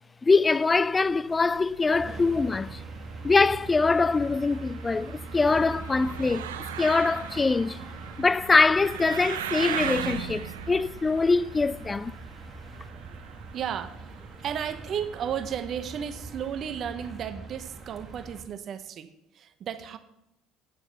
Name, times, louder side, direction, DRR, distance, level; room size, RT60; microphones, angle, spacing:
voice 1, 0.2-2.8 3.2-6.5 6.8-7.8 8.2-12.1, left 4 dB, 25° left, 0.3 m, -23 dB
sound 1, 0.7-16.6, right 10 dB, 85° right, 0.6 m, -40 dB
sound 2, 1.9-18.4, right 3 dB, 30° right, 2.1 m, -42 dB
voice 2, 12.9-20.0, right 8 dB, 50° right, 0.8 m, -34 dB
9.5 x 7.3 x 6.7 m
hypercardioid pair, 65°, 0 cm